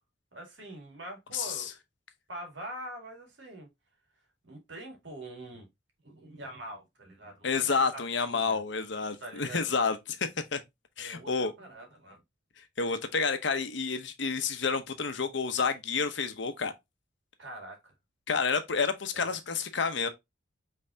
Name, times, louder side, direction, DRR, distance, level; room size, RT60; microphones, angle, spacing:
voice 1, 0.3-1.7 2.3-3.7 4.4-5.7 6.0-8.6 9.2-9.6 11.0-12.2 17.4-17.8 19.1-19.4, right 1 dB, 65° right, 2.1 m, -44 dB
voice 2, 1.3-1.6 7.4-10.6 11.0-11.5 12.8-16.7 18.3-20.1, left 5 dB, 65° left, 0.8 m, -29 dB
5.5 x 3.4 x 2.7 m
head